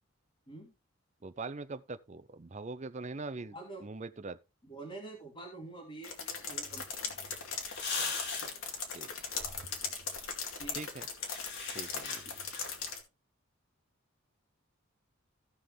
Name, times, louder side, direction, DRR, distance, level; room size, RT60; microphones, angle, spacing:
voice 1, 1.2-3.6 3.8-4.4 8.0-8.1 8.9-9.1 10.7-11.1 11.7-12.2, right 3 dB, 35° right, 0.6 m, -42 dB
voice 2, 3.3-3.8 4.6-7.2 10.5-10.8 12.2-12.4, right 2 dB, 25° left, 3.0 m, -47 dB
sound 1, 6.0-13.0, left 5 dB, 85° left, 2.2 m, -39 dB
sound 2, 6.7-12.9, left 4 dB, 55° left, 2.8 m, -43 dB
16.0 x 5.7 x 3.3 m
head